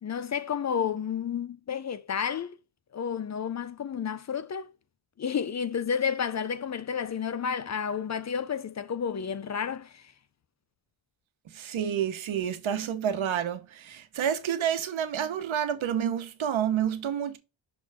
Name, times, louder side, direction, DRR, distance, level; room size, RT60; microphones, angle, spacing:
voice 1, 0.0-2.6 2.9-4.7 5.2-10.1, left 7 dB, 40° left, 0.4 m, -31 dB
voice 2, 11.5-17.4, right 9 dB, 90° right, 1.1 m, -29 dB
6.2 x 3.2 x 4.8 m
wide cardioid pair, 155°, 46 cm